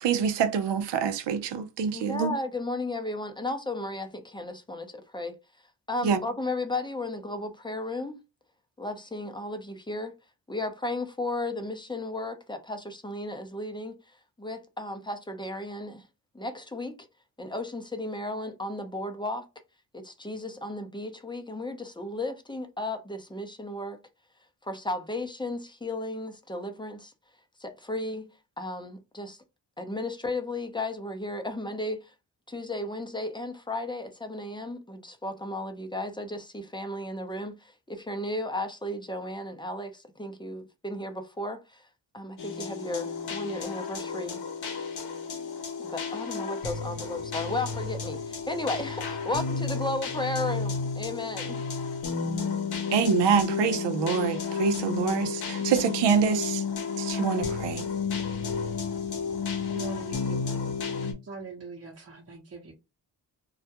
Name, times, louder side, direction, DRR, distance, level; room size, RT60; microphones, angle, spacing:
voice 1, 0.0-2.3 6.0-6.2 52.9-56.6 57.0-57.9, right 7 dB, 75° right, 0.6 m, -26 dB
voice 2, 1.9-5.4 5.9-8.2 8.8-10.1 10.5-16.1 16.3-17.1 17.4-19.5 19.9-24.0 24.6-27.1 27.6-29.4 29.8-32.1 32.5-41.9 42.1-44.4 45.8-51.6, left 2 dB, 10° left, 0.6 m, -34 dB
sound 1, 42.4-61.1, left 5 dB, 60° left, 0.9 m, -32 dB
voice 3, 59.7-60.7 61.2-62.7, right 3 dB, 35° right, 0.9 m, -42 dB
2.3 x 2.1 x 2.7 m
cardioid pair, 55°, 43 cm